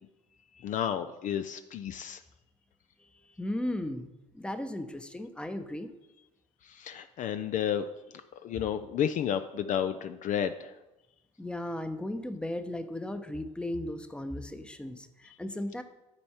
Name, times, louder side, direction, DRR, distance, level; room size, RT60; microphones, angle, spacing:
voice 1, 0.6-2.2 6.6-7.9 8.4-10.8, left 9 dB, 45° left, 9 dB, 0.4 m, -31 dB
voice 2, 3.4-5.9 11.4-15.8, left 1 dB, 5° left, 9 dB, 0.8 m, -36 dB
11.5 x 4.4 x 4.3 m, 0.99 s
hypercardioid pair, 65°, 18 cm